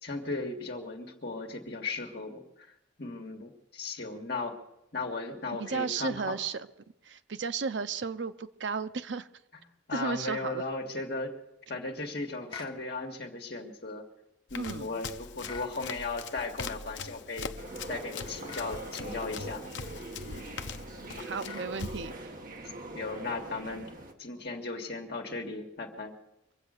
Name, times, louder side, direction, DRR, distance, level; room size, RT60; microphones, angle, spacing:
voice 1, 0.0-4.6 4.9-6.4 9.9-11.3 11.7-14.0 14.5-17.5 17.9-19.9 22.9-23.9 24.2-26.1, left 3 dB, 60° left, 1 dB, 2.1 m, -36 dB
voice 2, 5.6-6.7 7.0-9.3 9.9-10.6 14.6-15.0 21.2-22.1, right 5 dB, 75° right, 11 dB, 0.7 m, -34 dB
sound 1, 12.5-12.8 15.4-15.7 18.4-18.7 21.4-21.7, left 5 dB, 25° left, 1.1 m, -43 dB
Run, 14.5-22.1, left 5 dB, 75° left, 0.7 m, -42 dB
sound 2, 17.6-24.1, right 1 dB, 45° right, 1.6 m, -43 dB
24.0 x 8.1 x 6.6 m, 0.85 s
head